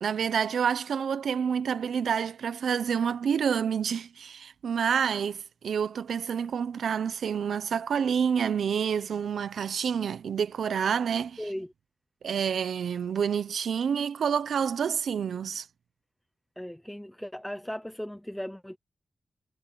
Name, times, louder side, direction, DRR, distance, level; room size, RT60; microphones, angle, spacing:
voice 1, 0.0-11.4 12.2-15.7, right 7 dB, 90° right, 0.8 m, -28 dB
voice 2, 11.4-11.7 16.6-18.8, equal, 5° left, 0.7 m, -37 dB
wide cardioid pair, 160°, 0 cm